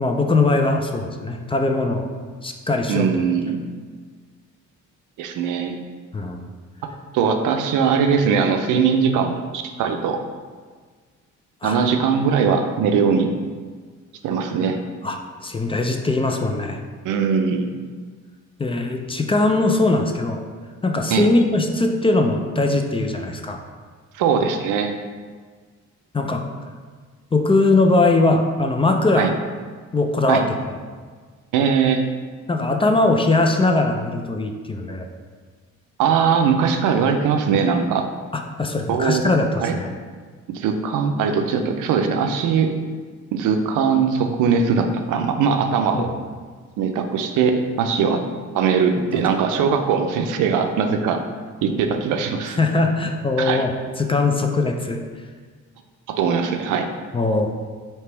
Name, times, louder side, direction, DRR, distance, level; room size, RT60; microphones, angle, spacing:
voice 1, 0.0-2.1 2.4-3.2 6.1-6.4 11.6-11.8 15.0-15.2 15.4-16.8 18.6-20.4 20.8-23.6 26.1-26.4 27.3-29.3 29.9-30.4 32.5-35.1 38.3-39.9 45.9-46.0 52.6-53.7 54.0-55.0 57.1-57.5, left 2 dB, 20° left, 4 dB, 0.3 m, -20 dB
voice 2, 2.9-3.6 5.2-5.8 7.1-10.2 11.6-13.3 14.2-14.8 17.0-17.7 21.1-21.3 24.1-24.9 29.2-29.3 30.3-30.4 31.5-32.0 36.0-38.1 38.9-39.2 39.6-39.8 40.5-42.7 43.3-46.1 46.8-48.2 48.5-51.2 51.6-52.6 53.4-53.7 56.1-56.9, right 6 dB, 85° right, 5 dB, 0.5 m, -20 dB
3.3 x 2.9 x 4.4 m, 1.5 s
cardioid pair, 90°, 30 cm